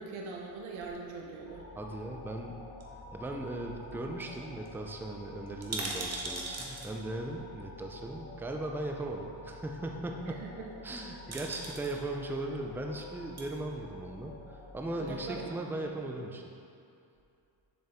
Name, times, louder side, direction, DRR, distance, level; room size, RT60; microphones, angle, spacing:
voice 1, 0.0-1.7 10.2-10.7 15.0-15.9, right 4 dB, 80° right, 0 dB, 0.9 m, -42 dB
sound 1, 1.5-15.5, left 2 dB, 30° left, 0.9 m, -49 dB
voice 2, 1.8-2.5 3.1-10.4 10.8-16.4, right 2 dB, 5° right, 2 dB, 0.4 m, -38 dB
sound 2, 2.8-3.6 3.9-4.0 4.2-4.4 4.6-4.7 5.5-6.9 8.1-8.2 10.7-11.0 11.3-11.9 13.1-13.5 14.1-14.8 15.1-15.2, right 3 dB, 30° right, 0.9 m, -39 dB
7.3 x 5.5 x 3.5 m, 2.5 s
cardioid pair, 125°, 48 cm